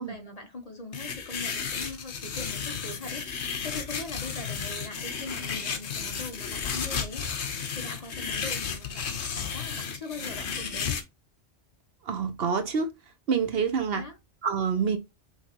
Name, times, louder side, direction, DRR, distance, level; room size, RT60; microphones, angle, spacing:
voice 1, 0.0-7.2 7.7-11.0 13.9-14.2, left 2 dB, 35° left, 0.9 m, -41 dB
sound 1, 0.9-11.0, left 6 dB, 70° left, 1.1 m, -33 dB
voice 2, 12.0-12.9 13.3-14.0 14.4-15.0, right 6 dB, 60° right, 0.9 m, -27 dB
5.7 x 3.2 x 2.9 m
omnidirectional pair, 1.2 m